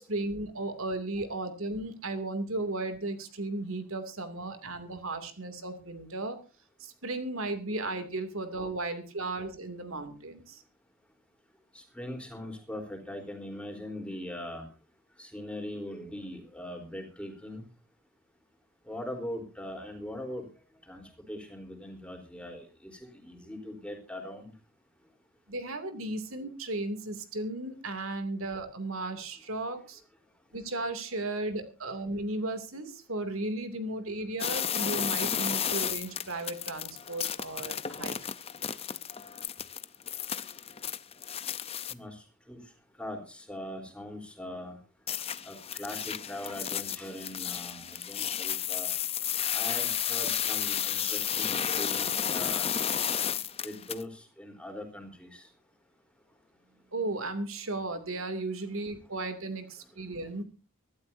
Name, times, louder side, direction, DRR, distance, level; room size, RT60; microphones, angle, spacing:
voice 1, 0.0-6.4 6.8-10.6 25.5-30.0 30.5-38.2 56.9-60.4, right 2 dB, 65° right, 9 dB, 2.7 m, -35 dB
voice 2, 11.7-14.7 15.2-17.7 18.8-20.5 20.8-24.5 41.9-42.6 43.0-44.8 45.4-48.9 49.5-52.8 53.6-55.5, left 1 dB, 5° left, 3 dB, 3.9 m, -41 dB
sound 1, 34.4-41.9 45.1-54.0, left 9 dB, 25° left, 0.7 m, -32 dB
24.0 x 13.0 x 2.7 m, 0.33 s
head